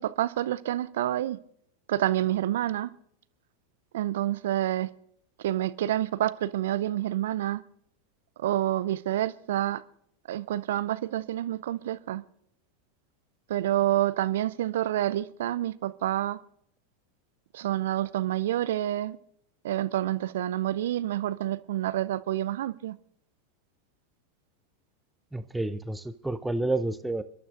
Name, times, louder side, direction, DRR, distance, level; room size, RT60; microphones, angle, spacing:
voice 1, 0.0-1.4 1.9-2.9 3.9-4.9 5.4-7.6 8.4-9.8 10.3-12.2 13.5-16.4 17.5-19.2 19.6-23.0, right 13 dB, 65° right, 17 dB, 0.5 m, -28 dB
voice 2, 25.3-27.2, right 2 dB, 5° right, 12 dB, 0.6 m, -30 dB
30.0 x 12.0 x 2.5 m, 0.69 s
figure-of-eight pair, 85°, 0 cm